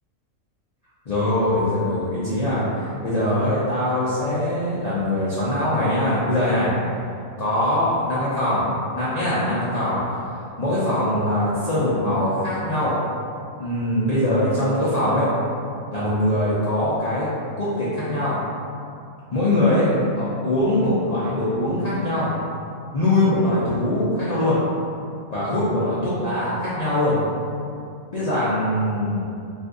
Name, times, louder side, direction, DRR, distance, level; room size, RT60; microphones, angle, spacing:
voice 1, 1.1-6.7 7.4-10.2 10.6-12.9 13.6-15.3 15.9-17.3 17.6-18.4 19.3-22.3 22.9-24.6 25.3-27.2 28.1-29.2, left 1 dB, 65° left, -10 dB, 0.4 m, -22 dB
2.6 x 2.4 x 3.6 m, 2.4 s
omnidirectional pair, 1.5 m